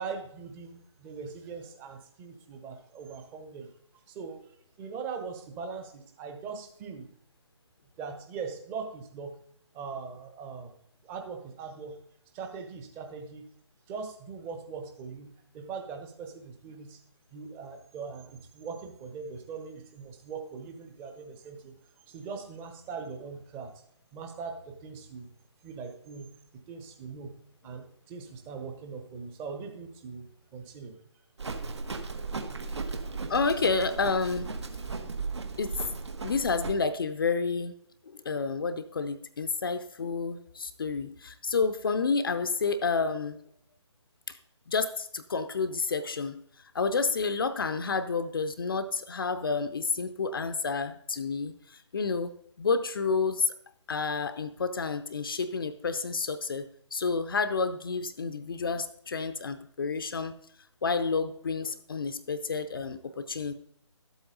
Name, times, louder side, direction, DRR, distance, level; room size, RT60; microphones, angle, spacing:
voice 1, 0.0-3.7 4.1-4.4 4.8-7.1 8.0-9.4 9.7-10.7 11.0-12.0 12.3-13.5 13.9-17.0 17.3-21.7 22.1-23.7 24.1-25.3 25.6-26.3 26.7-27.3 27.6-30.3 30.5-31.0, right 5 dB, 15° right, 5 dB, 0.9 m, -40 dB
Livestock farm animals working animals, 31.4-36.7, right 4 dB, 60° right, 1.4 m, -36 dB
voice 2, 33.3-34.5 35.6-35.7 36.2-37.7 38.1-43.4 44.3-44.4 44.7-46.4 46.7-52.3 52.6-53.5 53.9-60.3 60.8-63.5, left 4 dB, 45° left, 10 dB, 0.6 m, -30 dB
12.5 x 8.0 x 3.8 m, 0.66 s
figure-of-eight pair, 145°, 16 cm